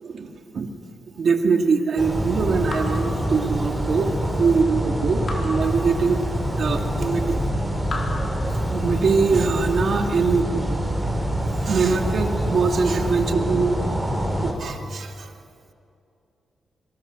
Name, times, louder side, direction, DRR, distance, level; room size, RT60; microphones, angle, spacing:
voice 1, 0.0-0.7 1.2-7.4 8.7-10.8 11.6-13.8 14.4-15.3, right 4 dB, 60° right, 3 dB, 2.4 m, -23 dB
sound 1, 2.0-14.5, equal, ahead, 5.5 m, -25 dB
Raindrop / Drip, 2.7-4.1 5.3-6.6 7.8-9.3, left 2 dB, 50° left, 4.3 m, -36 dB
26.0 x 23.5 x 6.5 m, 2.5 s
cardioid pair, 80°, 0 cm